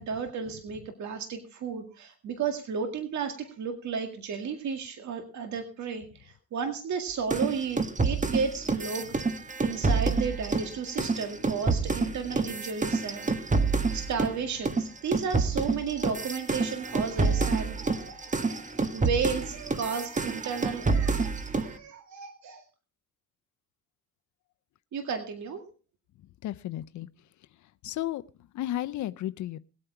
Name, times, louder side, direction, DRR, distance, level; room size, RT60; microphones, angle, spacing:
voice 1, 0.0-9.1 9.6-22.6 24.9-25.6, right 6 dB, 70° right, 5 dB, 2.0 m, -33 dB
sound 1, 7.3-14.4 14.6-21.7, right 3 dB, 25° right, 1.4 m, -28 dB
voice 2, 26.4-27.1 27.8-28.2 28.5-29.6, left 13 dB, 70° left, 13 dB, 0.6 m, -33 dB
19.5 x 8.7 x 4.5 m, 0.36 s
cardioid pair, 90°, 30 cm